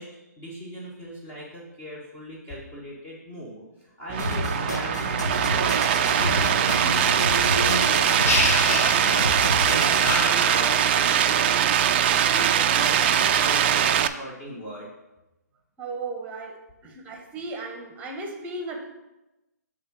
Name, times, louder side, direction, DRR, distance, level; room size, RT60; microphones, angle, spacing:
voice 1, 0.0-14.9, equal, 20° left, -5 dB, 1.3 m, -40 dB
sound 1, 4.1-14.1, right 9 dB, 35° right, 0.4 m, -22 dB
sound 2, 4.2-10.2, left 1 dB, 75° left, 1.5 m, -29 dB
sound 3, 8.2-9.6 10.0-11.3, left 4 dB, 55° left, 1.0 m, -29 dB
voice 2, 15.8-18.9, right 3 dB, 15° right, 2 dB, 1.0 m, -35 dB
7.7 x 3.7 x 5.9 m, 1.0 s
hypercardioid pair, 145°, 10 cm